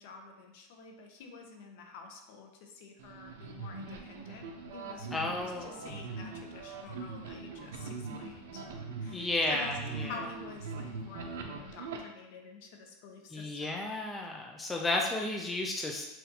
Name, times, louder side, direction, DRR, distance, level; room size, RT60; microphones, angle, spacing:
voice 1, 0.0-4.5 4.7-8.6 9.0-14.1, left 4 dB, 60° left, 3 dB, 0.7 m, -48 dB
sound 1, 3.0-12.0, right 4 dB, 80° right, 0.6 m, -42 dB
voice 2, 5.1-5.7 9.1-10.1 13.3-16.0, left 2 dB, 10° left, 1 dB, 0.3 m, -33 dB
5.7 x 2.5 x 2.8 m, 0.94 s
supercardioid pair, 155°, 0 cm